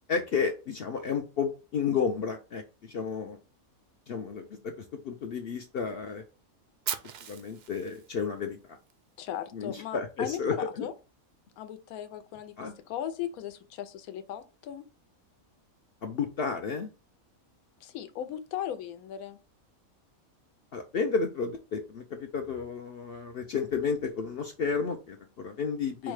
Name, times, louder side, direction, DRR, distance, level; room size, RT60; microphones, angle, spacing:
voice 1, 0.1-3.4 4.1-4.7 5.0-6.2 7.3-8.8 9.5-10.9 12.6-12.7 16.0-16.9 20.7-26.1, left 5 dB, 65° left, 0.6 m, -32 dB
Fire, 6.9-8.9, right 8 dB, 65° right, 0.6 m, -38 dB
voice 2, 9.2-10.9 11.6-14.8 17.8-19.4 26.0-26.1, left 10 dB, 80° left, 1.1 m, -37 dB
4.7 x 2.2 x 4.7 m
omnidirectional pair, 1.5 m